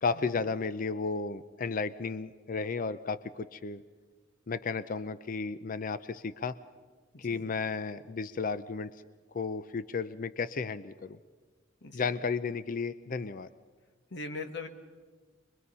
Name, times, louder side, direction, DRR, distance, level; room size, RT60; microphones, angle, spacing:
voice 1, 0.0-3.8 4.5-6.6 7.2-8.9 9.3-11.2 11.9-13.5, left 4 dB, 45° left, 14 dB, 0.5 m, -33 dB
voice 2, 7.1-7.5 11.8-12.0 14.1-14.7, left 3 dB, 65° left, 7 dB, 1.6 m, -40 dB
23.5 x 22.5 x 5.5 m, 1.5 s
head